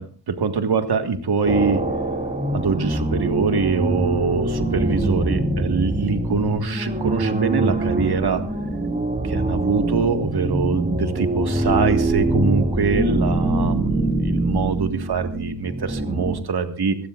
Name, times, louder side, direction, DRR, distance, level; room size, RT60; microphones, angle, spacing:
voice 1, 0.0-1.9 2.5-8.4 9.2-17.0, right 5 dB, 70° right, 7 dB, 1.8 m, -23 dB
sound 1, 1.4-16.4, right 1 dB, 20° right, 2.4 m, -24 dB
24.0 x 16.0 x 2.5 m, 0.41 s
wide cardioid pair, 100°, 40 cm